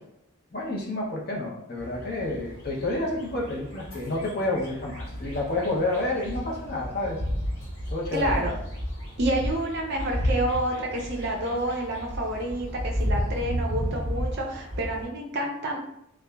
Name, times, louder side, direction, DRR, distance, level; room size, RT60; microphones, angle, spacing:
voice 1, 0.5-7.2 7.9-8.5, left 2 dB, 45° left, -2 dB, 0.6 m, -29 dB
sound 1, 1.8-15.0, equal, 25° left, 1.5 m, -33 dB
voice 2, 8.1-8.5 9.2-15.8, right 1 dB, 50° right, 0 dB, 0.5 m, -28 dB
2.8 x 2.2 x 2.2 m, 0.80 s
head